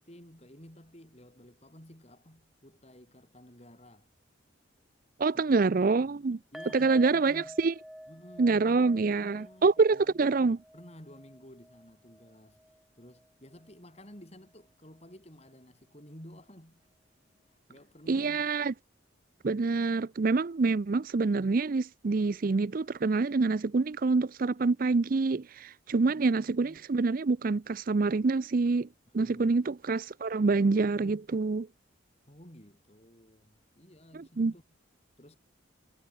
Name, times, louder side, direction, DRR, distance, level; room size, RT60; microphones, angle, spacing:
voice 1, 0.0-4.1 5.3-5.9 6.5-7.6 8.1-10.2 10.7-12.6 12.9-16.9 17.7-18.4 25.9-26.8 29.1-29.6 32.2-34.6 35.2-35.4, equal, 30° left, 5.1 m, -53 dB
voice 2, 5.2-6.4 6.7-7.7 8.4-10.6 18.1-18.7 19.4-28.9 29.1-31.7 34.1-34.5, right 4 dB, 45° right, 0.4 m, -26 dB
sound 1, 6.5-13.7 14.0-14.2 14.6-14.7, equal, ahead, 6.5 m, -51 dB
head